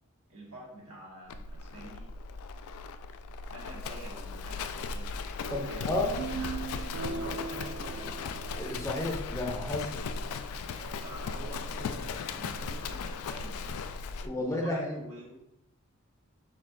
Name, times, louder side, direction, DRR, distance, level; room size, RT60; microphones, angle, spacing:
voice 1, 0.3-2.1 3.5-5.1 5.7-8.1 10.6-13.6 14.3-15.3, right 1 dB, 85° right, -5 dB, 1.6 m, -47 dB
Livestock farm animals working animals, 1.3-14.3, left 4 dB, 80° left, 0.3 m, -37 dB
sound 1, 5.4-9.7, right 5 dB, 55° right, 0.3 m, -40 dB
voice 2, 5.5-6.1 8.6-9.9 14.2-15.0, left 2 dB, 15° left, 0 dB, 0.5 m, -32 dB
4.6 x 4.0 x 2.5 m, 0.85 s
head